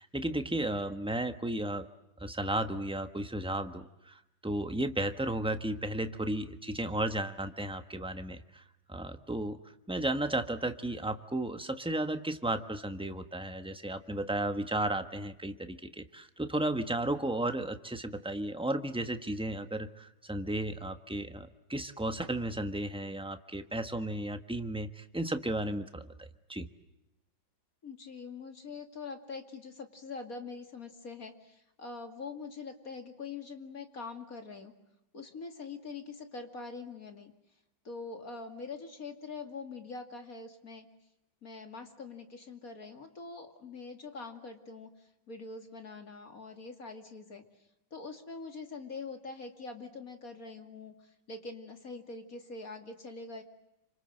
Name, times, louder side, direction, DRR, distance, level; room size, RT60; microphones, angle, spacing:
voice 1, 0.0-1.9 2.2-8.6 8.9-9.6 9.9-26.7, right 1 dB, 5° right, 8 dB, 1.0 m, -34 dB
voice 2, 27.8-34.7 35.1-37.3 37.8-40.9 41.4-47.4 47.9-53.4, left 4 dB, 45° left, 5 dB, 2.8 m, -44 dB
29.0 x 26.5 x 7.8 m, 0.89 s
omnidirectional pair, 2.2 m